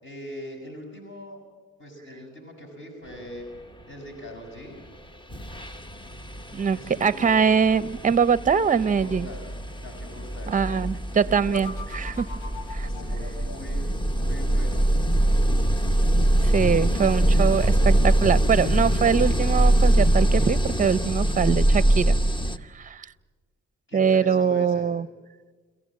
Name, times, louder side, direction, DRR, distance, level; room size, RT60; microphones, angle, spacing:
voice 1, 0.0-1.4 1.8-3.5 3.9-4.8 6.7-7.5 8.7-9.4 9.8-11.7 12.8-14.8 23.9-24.9, equal, 40° left, 2 dB, 6.7 m, -42 dB
sound 1, 4.8-5.0 5.3-22.6, right 1 dB, 15° left, 1.0 m, -23 dB
voice 2, 6.5-9.3 10.5-12.3 12.7-12.9 16.4-22.2 22.7-23.1 23.9-25.1, right 6 dB, 25° right, 17 dB, 0.7 m, -23 dB
sound 2, 11.5-14.4, left 4 dB, 85° left, 1.4 m, -43 dB
30.0 x 15.0 x 7.6 m, 1.4 s
cardioid pair, 90°, 30 cm